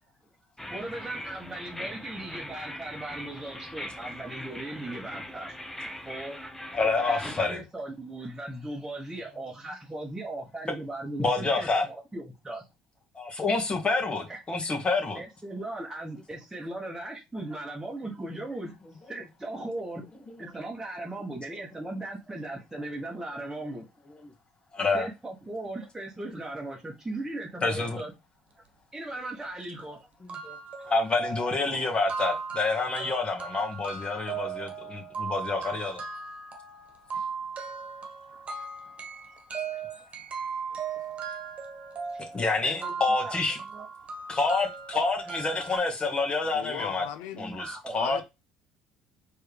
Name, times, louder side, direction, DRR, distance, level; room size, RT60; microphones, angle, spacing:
sound 1, 0.6-7.5, left 1 dB, 10° left, 0.8 m, -40 dB
voice 1, 0.7-5.6 6.0-6.4 7.1-12.7 14.3-14.7 15.1-18.7 19.0-20.0 20.4-23.9 24.9-28.1 28.6-28.7 28.9-30.1 30.8-30.9 38.3-38.4 39.7-40.1 42.1-42.9 43.2-43.9 47.3-48.2, right 2 dB, 10° right, 1.3 m, -38 dB
voice 2, 6.7-7.6 11.2-11.8 13.2-15.2 24.7-25.1 27.6-28.0 30.4-30.6 30.9-36.0 42.3-43.6 44.3-47.0 47.4-48.2, left 3 dB, 30° left, 1.9 m, -28 dB
sound 2, 29.3-29.4 29.8-29.9 30.3-45.8, right 5 dB, 35° right, 1.4 m, -37 dB
voice 3, 46.5-47.4 47.9-48.2, left 11 dB, 70° left, 0.6 m, -37 dB
4.4 x 3.4 x 3.4 m
hypercardioid pair, 65°, 3 cm